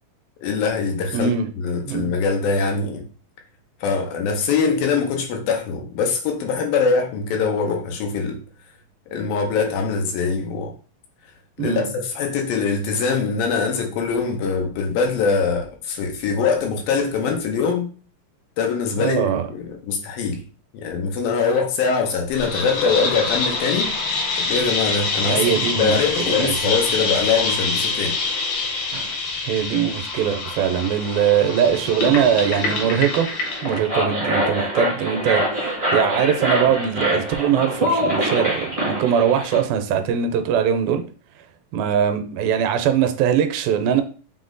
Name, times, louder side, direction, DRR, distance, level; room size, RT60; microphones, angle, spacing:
voice 1, 0.4-3.1 3.8-8.4 9.1-10.7 11.6-17.9 18.6-20.4 20.7-23.9 24.4-28.2, left 5 dB, 90° left, 2.5 m, -23 dB
voice 2, 1.1-1.5 1.9-2.1 11.6-11.9 19.0-19.4 25.2-26.7 28.9-29.2 29.4-33.3 33.6-41.0 41.7-44.0, right 8 dB, 85° right, 2.4 m, -21 dB
sound 1, 22.3-33.8, left 3 dB, 70° left, 1.3 m, -25 dB
sound 2, 33.4-39.6, equal, 40° right, 0.4 m, -24 dB
5.9 x 2.1 x 3.8 m
omnidirectional pair, 4.0 m